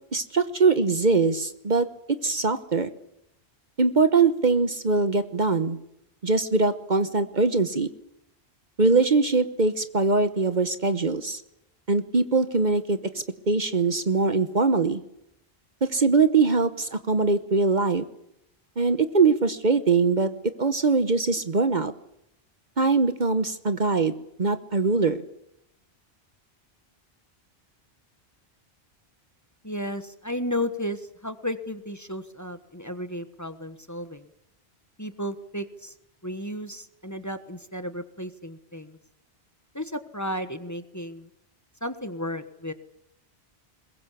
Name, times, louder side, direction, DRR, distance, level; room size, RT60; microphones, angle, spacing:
voice 1, 0.1-1.9 2.2-2.9 3.8-5.8 6.2-7.9 8.8-11.4 11.9-15.0 15.8-18.0 18.8-20.3 20.6-21.9 22.8-24.1 24.4-25.2, right 4 dB, 45° right, 11 dB, 1.2 m, -22 dB
voice 2, 29.6-34.3 35.0-35.9 36.2-39.0 39.7-41.3 41.8-42.7, left 1 dB, 15° left, 10 dB, 1.3 m, -33 dB
22.0 x 21.5 x 8.4 m, 0.79 s
omnidirectional pair, 1.1 m